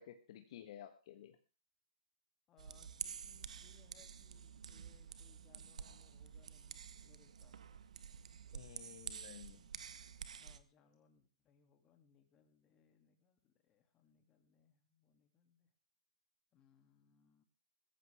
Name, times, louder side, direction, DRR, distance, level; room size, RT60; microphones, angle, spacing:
voice 1, 0.0-1.4 8.5-9.6, left 10 dB, 55° left, 7 dB, 1.3 m, -54 dB
voice 2, 2.5-7.8 10.3-15.7 16.5-17.4, left 7 dB, 25° left, 5 dB, 2.5 m, -71 dB
sound 1, 2.6-10.6, right 7 dB, 80° right, 1.1 m, -50 dB
16.0 x 14.5 x 3.5 m, 0.34 s
hypercardioid pair, 145°, 4 cm